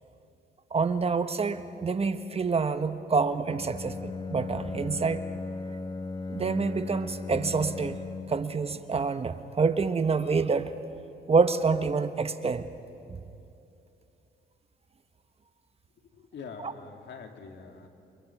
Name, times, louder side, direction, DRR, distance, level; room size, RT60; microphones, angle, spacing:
voice 1, 0.7-5.2 6.3-8.0 8.3-10.7 11.3-12.7 16.6-16.7, right 4 dB, 30° right, 10 dB, 1.0 m, -27 dB
Bowed string instrument, 3.4-8.5, left 3 dB, 25° left, 1.2 m, -37 dB
voice 2, 16.1-17.9, left 5 dB, 60° left, 4 dB, 2.5 m, -44 dB
29.5 x 24.5 x 6.0 m, 2.8 s
cardioid pair, 90°, 20 cm